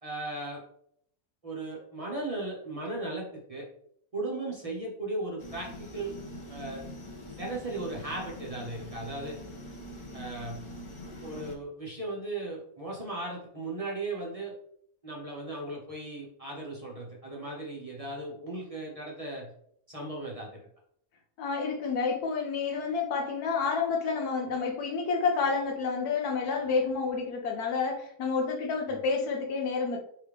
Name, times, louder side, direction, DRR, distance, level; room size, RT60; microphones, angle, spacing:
voice 1, 0.0-0.6 1.4-3.7 4.1-6.1 6.5-6.8 7.4-9.4 10.1-10.6 11.2-14.6 15.0-19.5 19.9-20.7 28.9-29.0, right 2 dB, 30° right, -4 dB, 0.9 m, -37 dB
sound 1, 5.4-11.5, left 1 dB, 30° left, 0.5 m, -43 dB
voice 2, 21.4-30.0, left 5 dB, 85° left, 2 dB, 1.4 m, -29 dB
4.8 x 3.2 x 3.4 m, 0.69 s
omnidirectional pair, 1.6 m